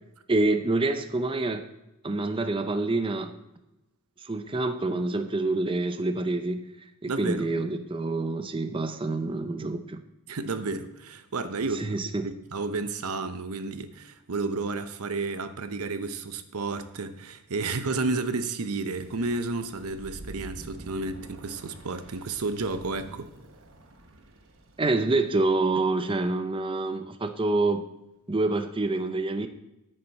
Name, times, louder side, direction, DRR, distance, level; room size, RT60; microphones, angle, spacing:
voice 1, 0.3-1.6 2.0-3.3 4.2-6.6 7.0-10.0 11.7-12.3 24.8-27.8 28.3-29.5, right 2 dB, 25° right, 0.6 m, -27 dB
voice 2, 7.1-7.5 10.3-12.0 12.2-23.3, right 3 dB, 90° right, 0.8 m, -31 dB
sound 1, 19.0-25.9, right 1 dB, 60° right, 1.1 m, -48 dB
9.9 x 9.1 x 4.1 m
head